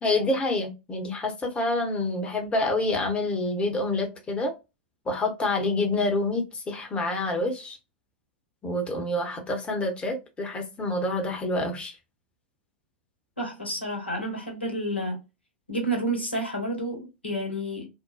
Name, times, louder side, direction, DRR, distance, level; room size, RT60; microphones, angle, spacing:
voice 1, 0.0-4.5 5.1-7.8 8.6-12.0, left 2 dB, 20° left, 0.9 m, -27 dB
voice 2, 13.4-15.2 15.7-17.9, right 1 dB, 90° left, 1.1 m, -30 dB
2.6 x 2.2 x 2.2 m
figure-of-eight pair, 95°, 6 cm